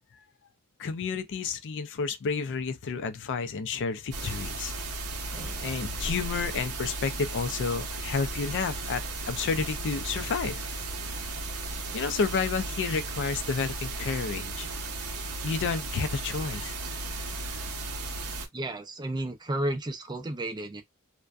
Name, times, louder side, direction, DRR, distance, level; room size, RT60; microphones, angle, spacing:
voice 1, 0.8-4.7 5.6-9.0 9.3-10.6 11.9-14.7 15.4-16.7 17.0-17.2, left 5 dB, 55° left, 0.4 m, -30 dB
sound 1, 4.1-18.5, right 2 dB, 75° right, 0.7 m, -35 dB
sound 2, 4.7-18.7, right 1 dB, 10° left, 1.1 m, -53 dB
voice 2, 18.5-20.8, right 1 dB, 20° right, 0.4 m, -32 dB
2.5 x 2.2 x 2.3 m
head